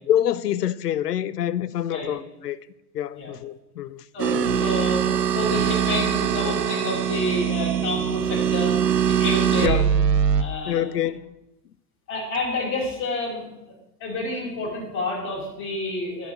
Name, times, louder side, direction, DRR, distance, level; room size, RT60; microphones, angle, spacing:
voice 1, 0.1-2.6 2.9-4.0 4.3-4.5 9.6-9.9 10.7-11.3, left 11 dB, 70° left, 0.8 m, -26 dB
voice 2, 4.1-8.8 9.0-9.9 10.4-10.8 12.1-13.7 14.0-16.3, left 2 dB, 35° left, 5.2 m, -29 dB
sound 1, 4.2-10.4, right 8 dB, 75° right, 1.1 m, -22 dB
16.0 x 5.8 x 7.4 m
figure-of-eight pair, 105°, 49 cm